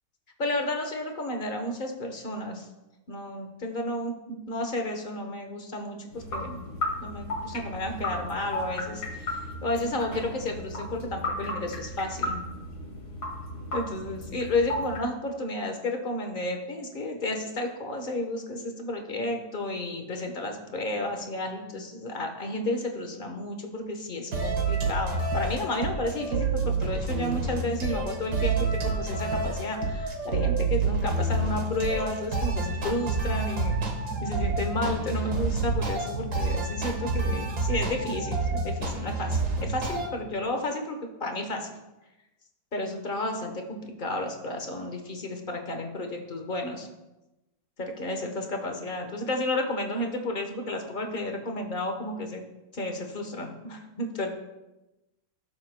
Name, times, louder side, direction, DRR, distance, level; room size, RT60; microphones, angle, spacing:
voice 1, 0.4-2.7 3.1-6.6 7.0-12.4 13.7-33.9 34.2-41.7 42.7-46.9 47.8-52.4 52.7-54.3, left 1 dB, 35° left, 4 dB, 0.9 m, -32 dB
sound 1, 6.1-15.0, left 1 dB, 60° left, 2.7 m, -35 dB
sound 2, 24.3-40.1, right 3 dB, 50° right, 1.8 m, -28 dB
17.0 x 7.3 x 2.2 m, 1.0 s
omnidirectional pair, 2.2 m